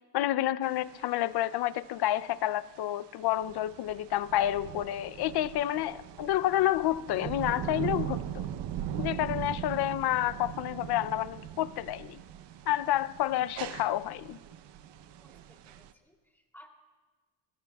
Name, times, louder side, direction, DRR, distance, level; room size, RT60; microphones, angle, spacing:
voice 1, 0.1-8.5 9.0-12.2 12.7-14.4, left 13 dB, 60° left, 16 dB, 0.6 m, -29 dB
sound 1, 0.6-15.9, right 10 dB, 70° right, 0.8 m, -40 dB
voice 2, 15.2-16.7, equal, 5° left, 1 dB, 2.9 m, -58 dB
24.5 x 20.5 x 2.4 m, 1.3 s
cardioid pair, 115°, 44 cm